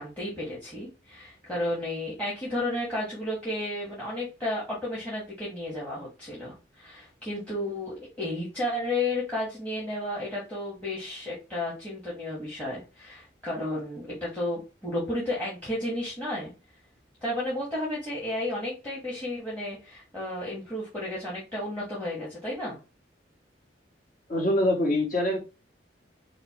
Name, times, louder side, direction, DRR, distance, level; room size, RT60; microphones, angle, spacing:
voice 1, 0.0-16.5 17.2-22.8, left 1 dB, 10° left, -5 dB, 1.3 m, -32 dB
voice 2, 24.3-25.4, left 1 dB, 45° left, 0 dB, 1.5 m, -24 dB
4.9 x 2.2 x 2.9 m, 0.30 s
head